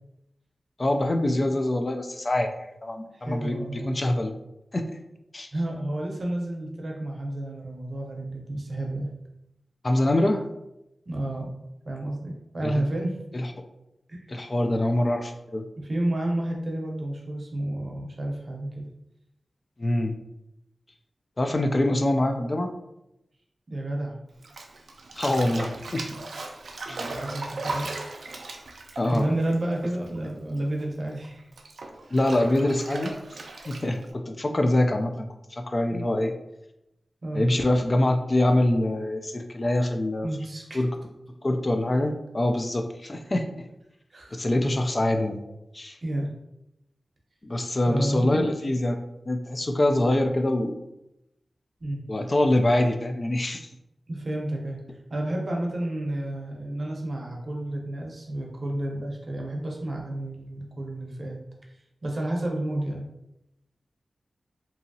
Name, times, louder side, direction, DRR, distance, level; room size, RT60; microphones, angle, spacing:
voice 1, 0.8-4.3 4.7-5.0 5.3-5.5 9.8-10.5 12.6-12.8 13.3-13.5 14.3-15.6 19.8-20.2 21.4-22.7 25.1-26.1 26.9-27.0 29.0-29.3 32.1-33.2 33.7-36.3 37.3-40.3 40.7-41.0 41.4-43.6 44.3-45.4 45.7-46.0 47.4-49.0 49.3-50.8 52.1-53.7, left 1 dB, 40° left, 5 dB, 0.3 m, -24 dB
voice 2, 3.1-4.0 5.5-9.1 11.1-11.5 11.8-13.1 14.1-14.2 15.8-18.8 23.7-24.1 26.1-26.2 27.1-27.9 28.2-28.3 29.1-31.5 35.9-36.0 37.2-37.4 40.2-40.8 44.1-44.4 46.0-46.3 47.9-48.6 51.8-52.0 54.1-54.8 55.1-61.4 62.0-63.0, right 1 dB, 60° right, 0 dB, 0.7 m, -31 dB
Bathtub (filling or washing), 24.4-30.3 30.5-34.1, right 2 dB, 90° right, 0.3 m, -37 dB
2.9 x 2.6 x 2.7 m, 0.87 s
wide cardioid pair, 80°, 0 cm